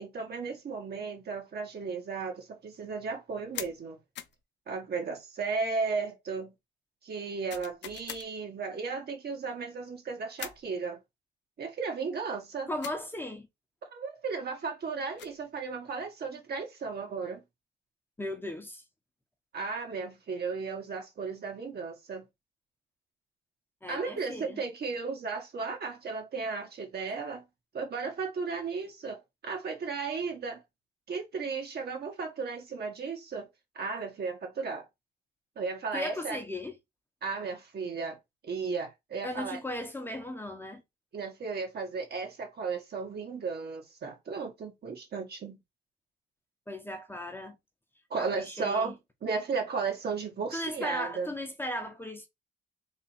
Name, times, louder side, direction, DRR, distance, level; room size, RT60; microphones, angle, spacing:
voice 1, 0.0-4.0 4.7-6.5 7.0-11.0 11.6-12.7 13.8-17.4 19.5-22.3 23.9-27.4 27.7-30.6 31.1-33.5 33.7-34.8 35.5-36.4 37.2-38.2 38.4-39.6 41.1-45.6 48.1-51.3, right 4 dB, 55° right, 1.7 m, -35 dB
sound 1, 3.5-3.8 4.2-4.4 7.5-8.3 10.4-10.7 12.8-13.0 14.9-15.4, left 10 dB, 65° left, 0.6 m, -41 dB
voice 2, 12.7-13.5 18.2-18.8 23.8-24.6 35.9-36.7 39.2-40.8 46.7-47.6 48.2-48.9 50.5-52.3, left 1 dB, 10° left, 1.1 m, -37 dB
3.7 x 2.8 x 4.4 m
cardioid pair, 90°, 20 cm